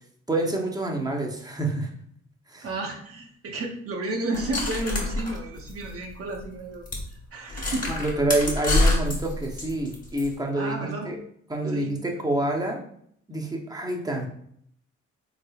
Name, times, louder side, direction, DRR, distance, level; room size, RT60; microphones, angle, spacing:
voice 1, 0.3-1.9 2.5-2.7 7.9-11.2 11.5-12.8 13.3-14.3, right 1 dB, 15° right, 0 dB, 0.7 m, -27 dB
voice 2, 2.6-6.8 7.3-7.9 10.5-11.1 11.7-12.2, right 2 dB, 50° right, 0 dB, 0.8 m, -32 dB
sound 1, 4.3-6.1 6.4-6.5 6.9-7.0 7.5-10.3, left 2 dB, 25° left, 1.2 m, -26 dB
3.6 x 3.3 x 2.3 m, 0.66 s
cardioid pair, 90°, 30 cm